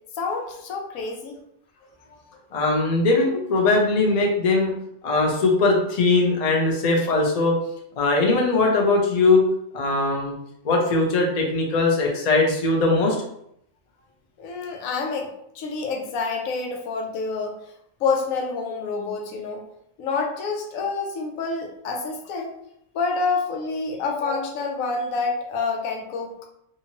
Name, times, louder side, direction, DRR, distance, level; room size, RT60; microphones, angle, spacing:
voice 1, 0.1-1.4 14.4-17.7 18.0-19.6 20.0-22.5 22.9-26.3, left 4 dB, 85° left, 3 dB, 1.0 m, -28 dB
voice 2, 2.5-4.7 5.0-7.5 8.0-9.4 9.7-10.3 10.6-13.1 24.2-24.4, left 3 dB, 45° left, 0 dB, 0.5 m, -20 dB
2.8 x 2.5 x 2.9 m, 0.75 s
omnidirectional pair, 1.4 m